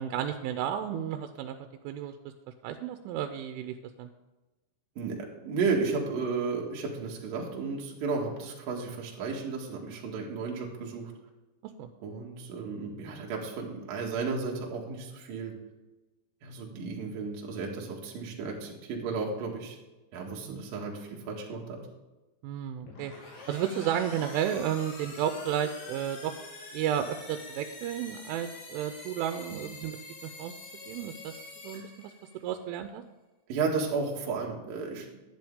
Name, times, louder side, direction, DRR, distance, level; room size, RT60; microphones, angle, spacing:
voice 1, 0.0-1.6 1.8-2.1 2.6-4.1 11.8-11.9 20.5-20.6 22.4-23.1 23.5-26.3 26.7-30.0 30.2-30.5 30.9-32.1 32.4-33.0, right 9 dB, 90° right, 7 dB, 3.1 m, -32 dB
voice 2, 5.4-11.1 12.0-15.5 16.4-19.8 20.1-21.8 33.5-35.1, right 4 dB, 55° right, -1 dB, 3.0 m, -33 dB
sound 1, 22.8-32.5, left 2 dB, 80° left, 5.2 m, -46 dB
11.0 x 10.5 x 3.6 m, 1.1 s
omnidirectional pair, 5.6 m